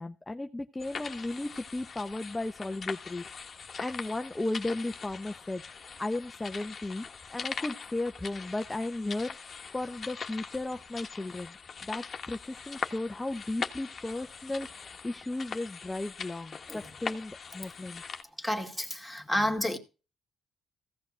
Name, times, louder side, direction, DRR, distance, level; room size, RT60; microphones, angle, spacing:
voice 1, 0.0-3.5 3.8-7.1 7.3-9.4 9.7-18.0, left 2 dB, 15° left, 0.8 m, -35 dB
sound 1, 0.8-18.2, left 5 dB, 40° left, 1.3 m, -41 dB
voice 2, 18.4-19.8, left 1 dB, 5° right, 2.3 m, -30 dB
15.5 x 6.5 x 6.2 m
cardioid pair, 90°, 0 cm